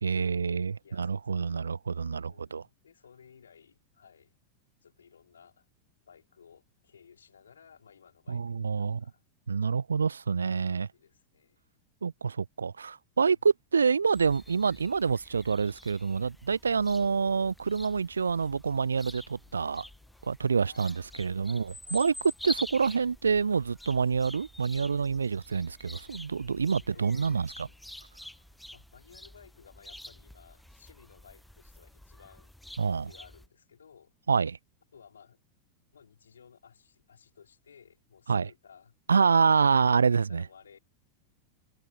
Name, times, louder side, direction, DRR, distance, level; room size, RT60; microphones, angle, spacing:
voice 1, 0.0-2.6 8.3-9.0 9.5-10.9 12.0-19.9 20.2-22.1 22.4-27.5 32.8-33.1 34.3-34.6 38.3-38.5 39.1-40.4, right 5 dB, 75° right, 0.4 m, -27 dB
voice 2, 0.8-1.6 2.2-4.4 4.8-5.7 6.1-9.2 10.6-11.6 13.3-13.4 20.6-22.0 26.6-27.5 28.7-32.5 32.8-34.1 34.9-35.4 35.9-39.0 40.0-40.8, left 7 dB, 70° left, 4.7 m, -57 dB
sound 1, 14.1-33.5, left 1 dB, 5° left, 1.2 m, -47 dB
figure-of-eight pair, 90°, 0 cm